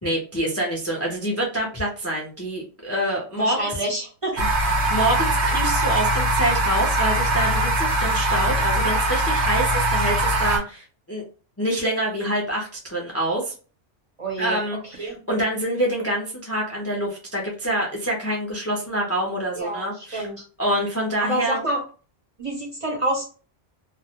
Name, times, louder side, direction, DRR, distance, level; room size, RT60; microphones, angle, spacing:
voice 1, 0.0-3.7 4.3-4.5 4.9-11.2 11.6-13.5 14.4-20.3 20.6-21.6, right 1 dB, 25° left, -2 dB, 0.4 m, -26 dB
voice 2, 3.4-4.4 14.2-15.2 19.6-20.4 21.2-21.8 22.4-23.2, right 1 dB, 40° right, -1 dB, 0.6 m, -28 dB
sound 1, 4.4-10.6, right 1 dB, 80° right, 1.0 m, -21 dB
2.3 x 2.0 x 2.8 m, 0.36 s
omnidirectional pair, 1.1 m